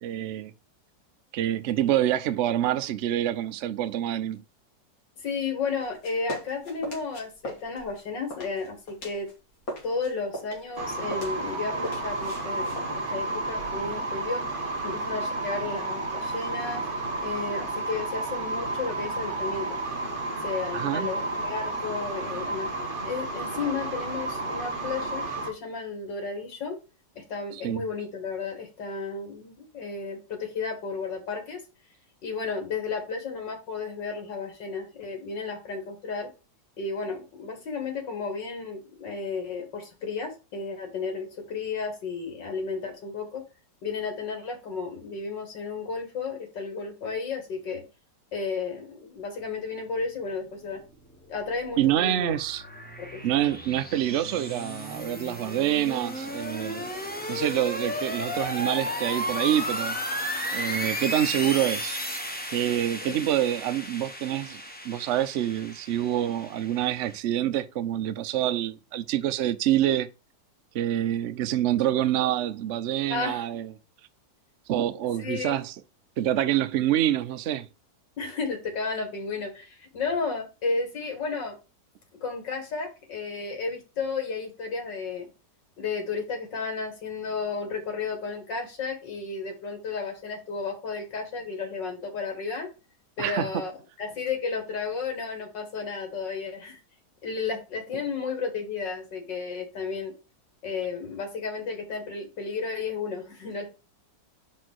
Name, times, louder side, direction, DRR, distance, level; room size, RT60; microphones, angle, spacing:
voice 1, 0.0-0.5 1.3-4.4 20.7-21.1 27.5-27.8 51.8-52.6 53.2-56.9 57.3-60.0 60.5-62.0 62.5-70.1 70.7-73.7 74.7-75.7 76.2-77.7 93.2-93.5, right 12 dB, 75° right, 0.6 m, -26 dB
voice 2, 5.2-9.3 9.8-16.8 17.2-19.8 20.4-22.7 23.0-26.7 27.1-31.6 32.2-36.3 36.8-43.4 43.8-47.8 48.3-50.8 51.3-52.3 53.0-53.2 63.0-63.2 73.1-73.5 75.2-75.6 78.2-81.5 82.2-85.3 85.8-92.7 93.2-93.7 94.0-96.8 97.2-100.1 100.6-103.7, left 4 dB, 85° left, 2.6 m, -33 dB
sound 1, 5.8-9.3 9.6-14.0, equal, 55° left, 2.4 m, -40 dB
sound 2, 10.8-25.5, right 2 dB, 30° right, 1.5 m, -32 dB
sound 3, 51.1-67.2, equal, 5° left, 0.8 m, -34 dB
5.1 x 4.5 x 6.1 m
omnidirectional pair, 1.9 m